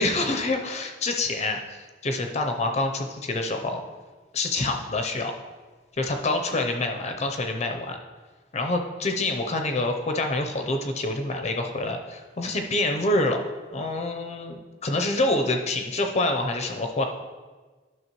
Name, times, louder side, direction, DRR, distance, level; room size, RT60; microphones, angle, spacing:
voice 1, 0.0-3.8 4.3-5.3 6.0-8.0 8.5-13.4 13.7-17.0, left 2 dB, 35° left, 4 dB, 0.6 m, -26 dB
11.0 x 6.0 x 3.0 m, 1.4 s
head